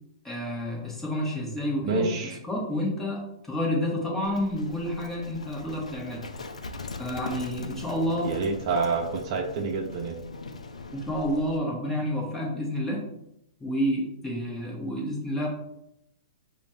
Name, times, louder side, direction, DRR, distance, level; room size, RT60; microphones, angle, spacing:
voice 1, 0.2-2.1 2.5-6.3 7.0-8.4 10.9-13.1 13.6-15.5, equal, 10° left, -2 dB, 1.3 m, -29 dB
voice 2, 1.8-2.4 8.2-10.2, right 4 dB, 50° right, 3 dB, 0.8 m, -28 dB
Livestock farm animals working animals, 4.2-11.6, left 3 dB, 90° left, 0.5 m, -41 dB
5.1 x 2.5 x 4.3 m, 0.79 s
hypercardioid pair, 125°, 3 cm